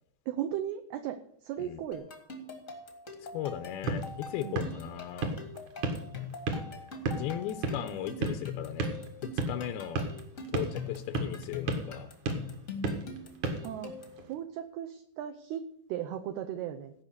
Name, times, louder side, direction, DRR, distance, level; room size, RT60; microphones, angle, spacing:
voice 1, 0.3-2.1 4.4-4.6 13.6-13.9 14.3-16.9, right 10 dB, 80° right, 7 dB, 2.4 m, -36 dB
sound 1, 1.9-14.2, left 4 dB, 70° left, 0.7 m, -43 dB
voice 2, 3.3-5.3 7.2-8.9 9.2-10.1 10.5-12.1, left 10 dB, 90° left, 10 dB, 2.2 m, -37 dB
sound 2, 3.5-14.3, right 3 dB, 55° right, 2.3 m, -36 dB
16.5 x 5.7 x 8.1 m, 0.69 s
omnidirectional pair, 5.4 m